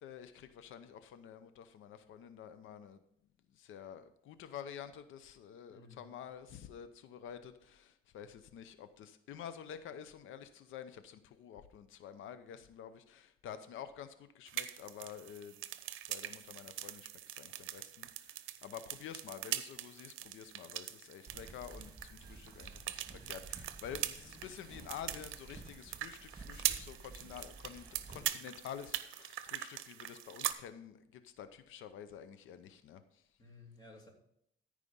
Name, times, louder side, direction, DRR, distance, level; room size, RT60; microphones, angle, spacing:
voice 1, 0.0-3.0 3.5-15.7 16.1-33.3, left 8 dB, 80° left, 11 dB, 0.7 m, -49 dB
voice 2, 5.7-6.1 33.4-34.1, left 2 dB, 20° left, 0 dB, 2.8 m, -56 dB
sound 1, 14.5-30.5, right 13 dB, 85° right, 0.6 m, -42 dB
sound 2, 21.3-28.2, right 3 dB, 20° right, 2.9 m, -52 dB
13.5 x 4.9 x 5.4 m, 0.72 s
cardioid pair, 90°, 20 cm